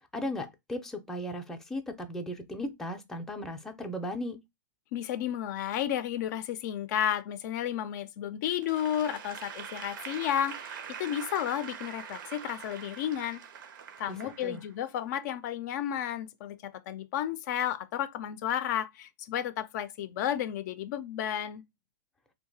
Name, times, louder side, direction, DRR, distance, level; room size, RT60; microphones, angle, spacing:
voice 1, 0.1-4.4 14.1-14.6, equal, 5° left, 0.5 m, -36 dB
voice 2, 4.9-13.4 14.0-21.6, left 10 dB, 60° left, 0.4 m, -32 dB
Applause / Crowd, 8.6-14.9, right 8 dB, 75° right, 0.6 m, -43 dB
2.8 x 2.2 x 3.9 m
hypercardioid pair, 125°, 11 cm